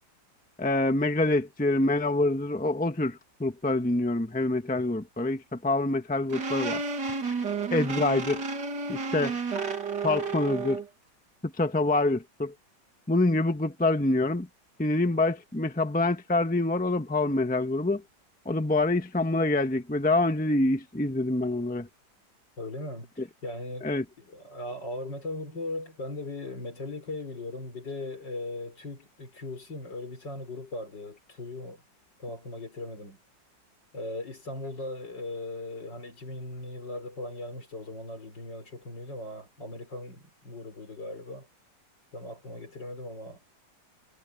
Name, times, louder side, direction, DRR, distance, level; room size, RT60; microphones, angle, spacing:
voice 1, 0.6-7.1 7.7-8.4 8.9-9.3 10.0-10.8 11.6-12.5 13.1-14.5 14.8-18.0 18.4-21.9 23.8-24.0, left 2 dB, 5° left, 1.1 m, -26 dB
sound 1, 6.3-10.9, right 4 dB, 65° right, 2.9 m, -31 dB
voice 2, 22.6-23.1 23.4-23.9 24.2-31.8 32.2-33.2 33.9-41.5 42.1-43.4, left 2 dB, 70° left, 6.2 m, -38 dB
omnidirectional pair, 2.0 m